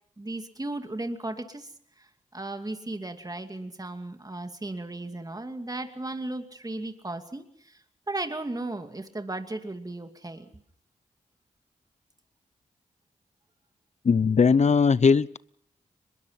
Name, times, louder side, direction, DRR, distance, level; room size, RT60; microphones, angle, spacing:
voice 1, 0.2-1.7 2.0-10.5, right 2 dB, 25° right, 6 dB, 2.5 m, -36 dB
voice 2, 14.0-15.4, left 5 dB, 50° left, 19 dB, 0.8 m, -19 dB
23.5 x 21.5 x 5.9 m, 0.67 s
supercardioid pair, 40°, 15 cm